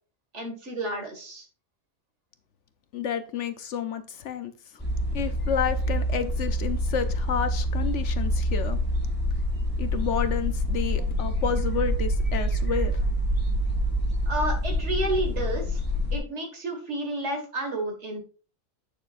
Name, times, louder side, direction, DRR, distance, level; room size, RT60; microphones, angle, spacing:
voice 1, 0.3-1.4 14.3-15.8 16.1-18.2, right 2 dB, 60° right, 2 dB, 2.2 m, -31 dB
voice 2, 2.9-4.5 5.1-8.8 9.8-12.9, left 7 dB, 65° left, 10 dB, 1.0 m, -30 dB
sound 1, 4.8-16.2, equal, 5° left, 1.9 m, -26 dB
8.8 x 6.7 x 2.5 m, 0.38 s
omnidirectional pair, 1.4 m